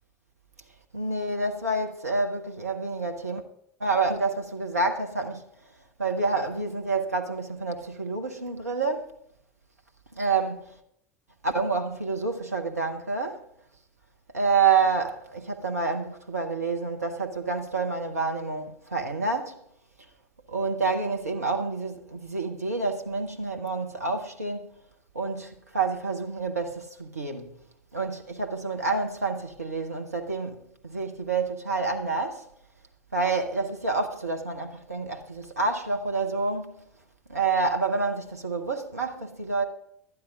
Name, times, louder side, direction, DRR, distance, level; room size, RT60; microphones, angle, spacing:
voice 1, 0.9-3.4 3.8-5.4 6.0-9.1 10.1-10.8 11.4-13.4 14.3-19.6 20.5-24.7 25.1-27.6 27.9-32.5 33.1-36.8 37.3-39.6, right 4 dB, 85° right, 1.0 m, -28 dB
12.0 x 9.5 x 5.1 m
figure-of-eight pair, 80°, 8 cm